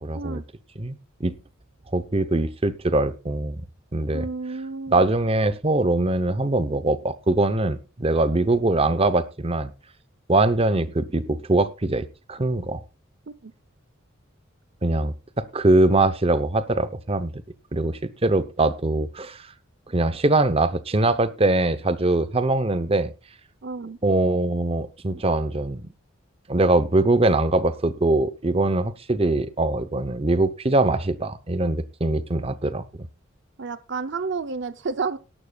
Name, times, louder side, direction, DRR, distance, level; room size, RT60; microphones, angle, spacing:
voice 1, 0.0-0.4 0.8-1.3 1.9-3.6 3.9-4.3 4.9-9.7 10.3-12.8 14.8-17.4 17.7-19.4 19.9-23.1 24.0-25.9 26.5-32.8, right 2 dB, 30° right, 13 dB, 0.8 m, -22 dB
voice 2, 4.1-5.0 13.3-13.5 23.6-24.0 33.6-35.2, right 4 dB, 60° right, 13 dB, 0.6 m, -30 dB
18.0 x 11.5 x 2.4 m, 0.29 s
head